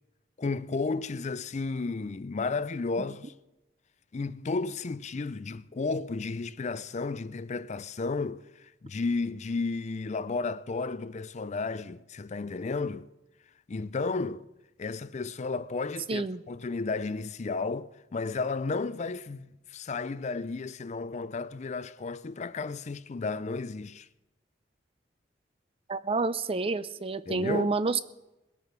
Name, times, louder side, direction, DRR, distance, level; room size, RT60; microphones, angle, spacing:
voice 1, 0.4-3.3 4.1-13.1 13.7-14.5 14.8-24.1 27.3-27.7, left 3 dB, 40° left, 0.4 m, -33 dB
voice 2, 16.1-16.4 25.9-28.0, right 3 dB, 30° right, 0.5 m, -29 dB
20.5 x 8.3 x 5.9 m
head